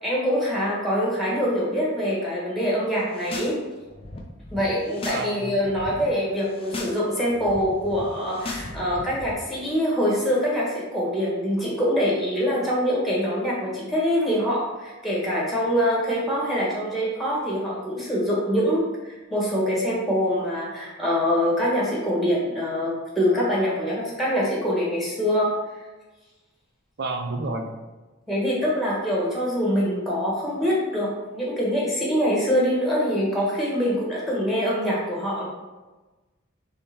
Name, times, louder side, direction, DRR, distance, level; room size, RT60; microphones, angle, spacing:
voice 1, 0.0-3.6 4.5-25.5 28.3-35.5, equal, ahead, -5 dB, 1.1 m, -24 dB
sound 1, 3.0-3.6 3.8-5.3 5.5-5.9 6.4-7.0 7.2-9.3, left 2 dB, 25° left, 0.6 m, -37 dB
voice 2, 5.1-6.1 27.0-27.7, right 2 dB, 50° right, 4 dB, 0.5 m, -31 dB
3.6 x 3.4 x 4.1 m, 1.2 s
head